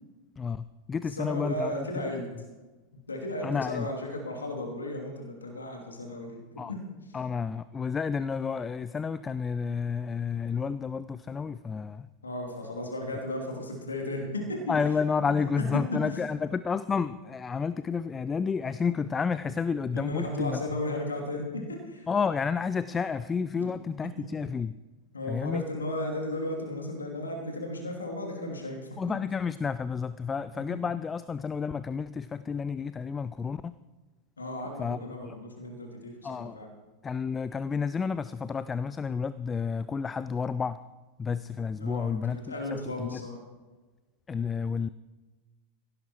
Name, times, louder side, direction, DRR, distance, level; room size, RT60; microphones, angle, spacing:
voice 1, 0.4-1.9 3.4-3.9 6.6-6.7 7.1-12.1 14.7-20.6 22.1-24.7 25.3-25.6 29.0-33.8 34.8-35.3 36.2-36.6 37.0-40.8 41.2-43.2 44.3-44.9, left 5 dB, 15° left, 15 dB, 0.4 m, -30 dB
voice 2, 1.1-2.3 3.1-7.1 12.2-14.8 15.2-15.4 19.9-22.1 24.2-24.3 25.1-28.9 34.4-36.7 41.5-43.4, left 1 dB, 75° left, 1 dB, 2.8 m, -35 dB
16.5 x 11.0 x 4.5 m, 1.2 s
figure-of-eight pair, 90°, 0 cm